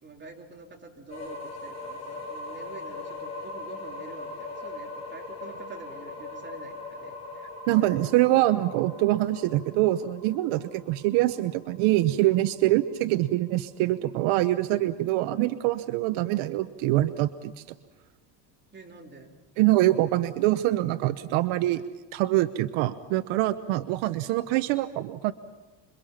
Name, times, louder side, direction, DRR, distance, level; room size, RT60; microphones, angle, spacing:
voice 1, 0.0-7.8 10.5-10.6 18.7-19.3, right 4 dB, 20° right, 1 dB, 3.7 m, -47 dB
sound 1, 1.1-12.9, left 3 dB, 30° left, 7.6 m, -40 dB
voice 2, 7.7-17.6 19.6-21.8 22.1-25.3, right 16 dB, 75° right, 11 dB, 1.0 m, -24 dB
27.0 x 24.0 x 5.8 m, 1.2 s
cardioid pair, 120°, 50 cm